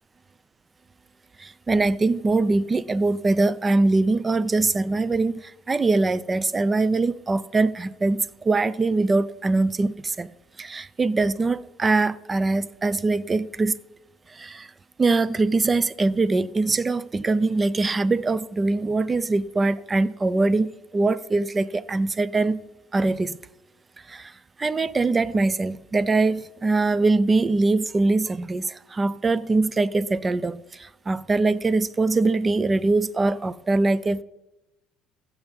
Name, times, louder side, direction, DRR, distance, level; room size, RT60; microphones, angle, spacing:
voice 1, 1.4-10.3 10.6-13.7 14.3-14.7 15.0-22.6 22.9-23.4 24.1-24.3 24.6-34.2, right 3 dB, 20° right, 0.4 m, -22 dB
15.0 x 7.2 x 5.3 m
cardioid pair, 105°, 0 cm